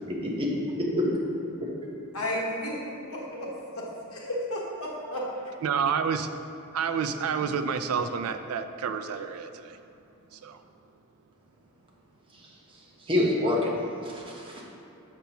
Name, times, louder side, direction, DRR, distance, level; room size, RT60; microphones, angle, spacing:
voice 1, 0.1-0.5 0.8-1.2 13.1-13.7 14.0-14.6, left 1 dB, 25° right, -3 dB, 1.0 m, -26 dB
voice 2, 2.1-2.7 3.1-3.5 4.1-5.2, left 1 dB, 80° left, -3 dB, 1.2 m, -32 dB
voice 3, 5.6-6.3 6.7-9.8 10.4-10.6, right 6 dB, 85° right, 9 dB, 0.4 m, -29 dB
6.8 x 6.8 x 2.9 m, 2.8 s
head